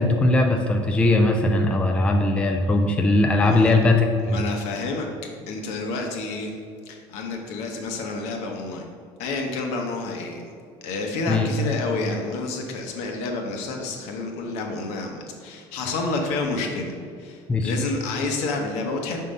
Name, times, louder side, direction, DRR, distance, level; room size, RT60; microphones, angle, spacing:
voice 1, 0.0-4.4 11.3-11.5 17.5-17.7, left 2 dB, 10° left, 3 dB, 0.4 m, -20 dB
voice 2, 4.2-5.1 5.5-6.5 6.9-8.9 9.2-10.4 10.8-19.2, left 3 dB, 70° left, 2 dB, 1.0 m, -29 dB
5.5 x 3.8 x 5.2 m, 2.3 s
cardioid pair, 150°, 11 cm